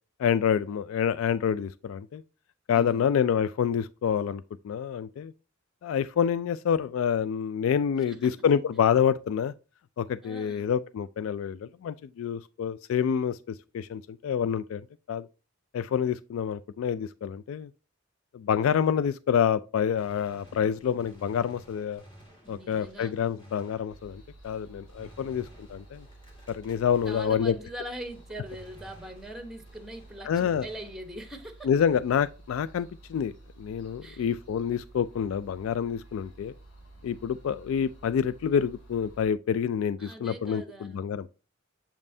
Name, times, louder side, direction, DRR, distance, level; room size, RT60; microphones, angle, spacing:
voice 1, 0.2-2.2 2.7-5.3 5.8-9.5 10.0-15.3 15.7-17.7 18.3-22.0 22.5-26.1 26.5-27.5 30.2-30.7 31.6-33.3 33.6-36.5 37.0-41.3, left 8 dB, 80° left, 0.3 m, -27 dB
voice 2, 2.7-3.1 8.0-8.3 10.2-10.7 22.4-23.1 27.1-31.7 34.0-34.3 40.0-41.0, right 1 dB, ahead, 0.9 m, -42 dB
Gunshot gunfire, 20.0-27.8 28.0-31.4, right 1 dB, 25° left, 1.9 m, -54 dB
sound 1, 23.9-39.3, right 2 dB, 65° left, 2.2 m, -52 dB
7.1 x 5.4 x 2.6 m
head